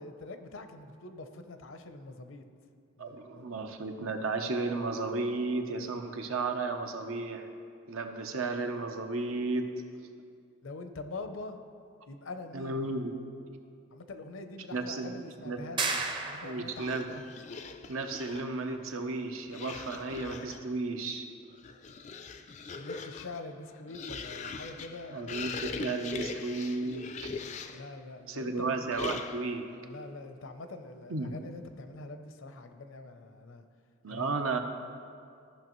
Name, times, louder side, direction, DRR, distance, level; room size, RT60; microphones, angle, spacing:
voice 1, 0.0-2.4 3.0-3.6 10.6-11.6 12.1-12.8 13.9-17.2 22.7-25.5 27.7-28.7 29.8-33.6 34.1-34.3, left 3 dB, 75° left, 8 dB, 0.6 m, -44 dB
voice 2, 3.0-7.5 7.9-9.8 12.5-13.1 14.7-15.6 16.4-17.0 17.9-21.3 25.1-27.3 28.3-29.8 31.1-31.3 34.0-34.6, right 3 dB, 85° right, 5 dB, 0.7 m, -33 dB
sound 1, 15.8-16.9, right 3 dB, 25° right, 0.5 m, -32 dB
sound 2, 16.7-18.6 19.5-20.7 21.4-27.9 28.9-29.6, left 4 dB, 35° left, 0.3 m, -41 dB
14.5 x 5.8 x 3.0 m, 2.3 s
head